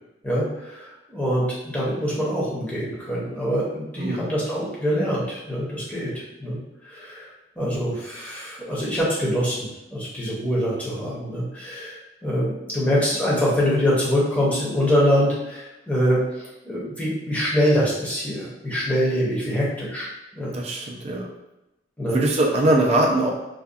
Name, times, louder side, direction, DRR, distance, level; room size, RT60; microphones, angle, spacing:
voice 1, 0.2-6.1 6.4-6.6 6.9-7.3 7.6-20.1 20.3-20.6 22.0-22.2, equal, 10° left, -7 dB, 0.7 m, -24 dB
voice 2, 20.5-21.3 22.1-23.3, right 1 dB, 35° right, 0 dB, 0.4 m, -21 dB
2.6 x 2.2 x 2.3 m, 0.96 s
head